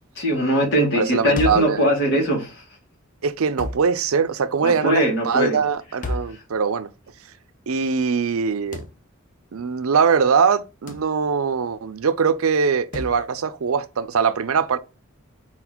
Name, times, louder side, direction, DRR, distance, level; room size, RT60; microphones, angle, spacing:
voice 1, 0.2-2.6 4.6-5.6, equal, 55° left, 2.3 m, -21 dB
voice 2, 0.9-1.9 3.2-6.9 7.7-8.8 9.5-14.8, right 6 dB, 80° right, 0.5 m, -22 dB
sound 1, 1.4-1.8 3.6-3.9 6.0-6.4 8.7-9.0 10.9-11.1 12.9-13.2, left 2 dB, 35° left, 0.6 m, -30 dB
4.3 x 4.0 x 2.9 m
head